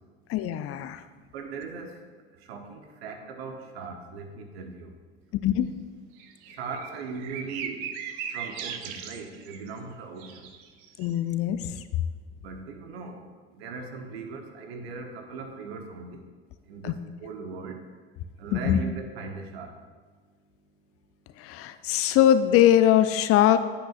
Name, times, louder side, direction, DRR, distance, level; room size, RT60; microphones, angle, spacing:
voice 1, 0.3-1.0 5.3-5.7 11.0-11.8 16.8-16.9 18.5-18.8 21.4-23.6, left 11 dB, 50° left, 12 dB, 0.5 m, -22 dB
voice 2, 1.3-2.0 2.5-4.9 6.5-7.8 8.3-10.5 12.4-13.2 13.5-16.2 16.7-17.8 18.4-19.7, right 4 dB, 80° right, 4 dB, 1.0 m, -39 dB
sound 1, 6.2-9.8 10.2-11.1, right 8 dB, 65° right, 0.7 m, -38 dB
8.6 x 7.8 x 2.5 m, 1.4 s
hypercardioid pair, 70°, 31 cm